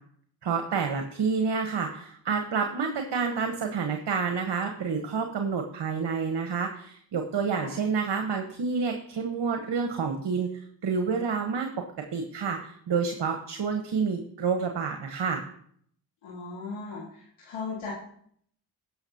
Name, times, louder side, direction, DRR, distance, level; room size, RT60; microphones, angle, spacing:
voice 1, 0.4-10.5 10.8-11.7 12.1-15.4, right 5 dB, 60° right, 4 dB, 1.3 m, -29 dB
voice 2, 16.2-17.9, left 4 dB, 80° left, -5 dB, 2.1 m, -37 dB
17.5 x 6.1 x 2.9 m, 0.63 s
supercardioid pair, 45°, 48 cm